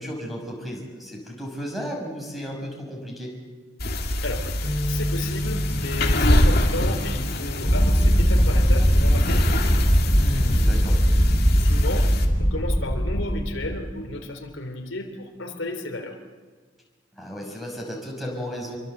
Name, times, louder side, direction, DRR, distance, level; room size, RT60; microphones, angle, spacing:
voice 1, 0.0-3.3 10.2-11.0 17.2-18.8, equal, ahead, 0 dB, 5.8 m, -34 dB
sound 1, 3.8-12.3, left 1 dB, 50° left, 2.7 m, -25 dB
sound 2, 4.6-10.9, equal, 20° right, 2.1 m, -35 dB
voice 2, 4.9-9.6 11.6-12.1 12.4-16.2, left 2 dB, 80° left, 4 dB, 3.2 m, -33 dB
sound 3, 7.6-13.9, equal, 30° left, 3.4 m, -20 dB
27.0 x 24.0 x 7.9 m, 1.5 s
head